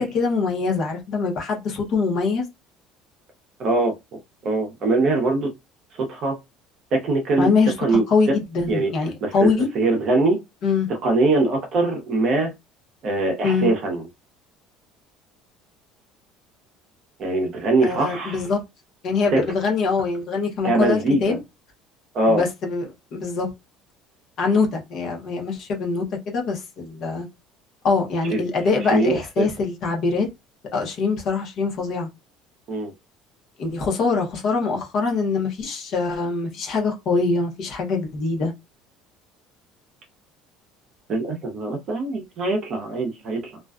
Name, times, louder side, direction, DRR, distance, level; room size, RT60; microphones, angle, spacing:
voice 1, 0.0-2.4 7.4-9.7 10.6-10.9 13.4-13.7 17.8-18.6 19.0-21.4 22.3-22.9 23.1-23.5 24.4-27.3 27.8-30.3 30.7-32.1 33.6-38.5, left 4 dB, 40° left, 0.8 m, -23 dB
voice 2, 3.6-5.5 5.9-6.4 6.9-7.5 7.8-8.0 8.7-8.9 9.2-10.4 11.0-12.5 13.0-14.0 17.2-18.4 19.3-19.4 20.6-21.4 22.1-22.4 28.3-28.5 28.9-29.5 32.7-32.9 41.1-43.6, right 2 dB, 35° right, 0.7 m, -22 dB
2.4 x 2.2 x 2.3 m
cardioid pair, 175°, 0 cm